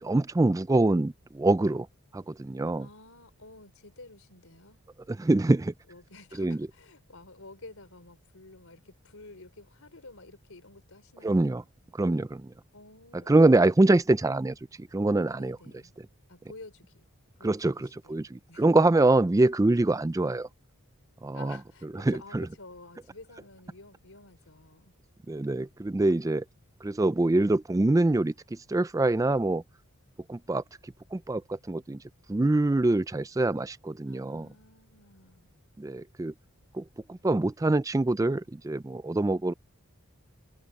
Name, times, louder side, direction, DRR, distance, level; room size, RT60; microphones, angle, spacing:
voice 1, 0.0-1.9 2.1-2.9 5.1-5.7 6.4-6.6 11.2-11.6 12.0-12.5 13.3-15.6 17.4-20.5 21.2-21.6 21.9-22.5 25.3-26.4 26.8-29.6 30.3-30.6 31.1-32.0 32.3-34.5 35.8-36.3 36.7-39.5, right 2 dB, 15° right, 0.3 m, -25 dB
voice 2, 2.8-4.8 5.9-11.5 12.7-13.7 15.4-16.0 16.3-17.0 17.4-18.7 21.3-24.9 34.0-35.5, left 2 dB, 70° left, 3.7 m, -51 dB
head